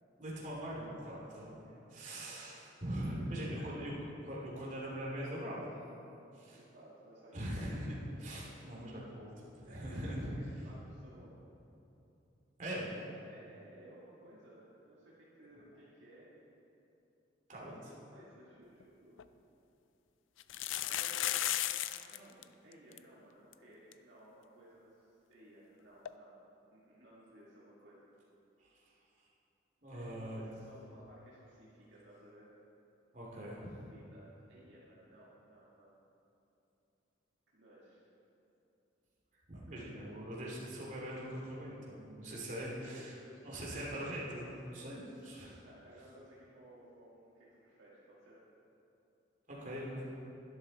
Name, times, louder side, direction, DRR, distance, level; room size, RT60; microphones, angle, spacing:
voice 1, 0.2-1.6 1.9-3.9 4.3-5.7 6.3-6.6 7.3-10.3 12.6-12.9 15.5-15.6 17.5-17.9 28.6-28.7 29.8-30.5 33.1-33.5 39.5-43.1 43.4-45.6 49.5-50.1, equal, 40° right, -5 dB, 3.0 m, -42 dB
voice 2, 3.1-4.3 6.5-7.6 9.6-11.5 13.3-15.1 15.4-16.3 17.6-19.2 20.9-21.4 21.9-26.4 26.7-28.0 29.9-32.5 33.4-33.6 33.8-35.9 37.5-38.0 39.5-39.9 42.6-43.4 45.6-48.4, right 1 dB, 65° right, -8 dB, 2.1 m, -58 dB
sound 1, 18.8-18.9 19.2-19.3 20.4-22.2 22.4-22.5 22.7-23.0 23.5-23.6 23.9-24.0 26.0-26.1, left 13 dB, 85° left, 0.4 m, -34 dB
11.5 x 11.5 x 4.2 m, 2.8 s
head